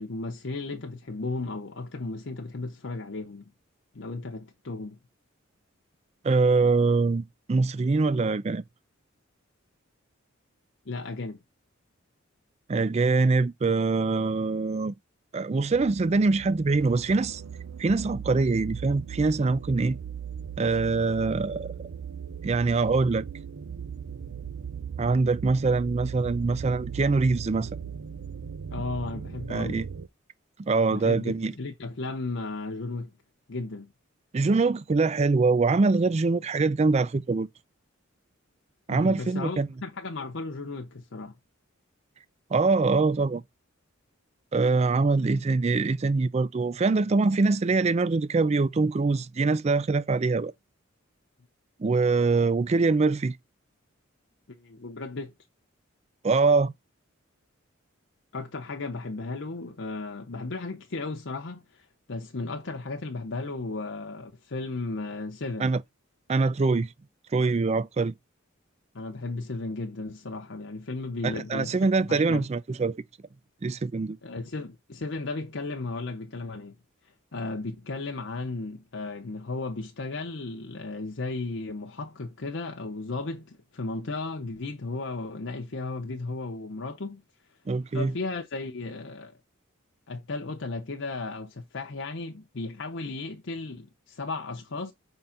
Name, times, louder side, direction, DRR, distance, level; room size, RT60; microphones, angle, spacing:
voice 1, 0.0-3.5 3.9-5.0 10.9-11.4 28.7-29.8 30.9-33.1 33.5-33.9 38.9-41.3 54.5-55.3 58.3-65.7 68.9-71.8 72.1-72.5 74.2-76.8 77.0-87.2 87.9-89.4 90.1-94.9, left 3 dB, 60° left, 0.8 m, -35 dB
voice 2, 6.2-8.6 12.7-14.9 15.3-17.4 17.8-20.0 20.6-21.7 22.4-23.2 25.0-27.7 29.5-29.9 30.6-31.5 34.3-37.5 38.9-39.7 42.5-43.4 44.5-50.5 51.8-53.4 56.2-56.7 65.6-65.8 66.3-66.9 67.3-68.1 71.2-73.0 73.6-74.2 87.7-88.1, right 3 dB, 30° right, 0.4 m, -24 dB
sound 1, 15.6-30.1, right 7 dB, 85° right, 0.6 m, -38 dB
5.3 x 3.8 x 5.7 m
head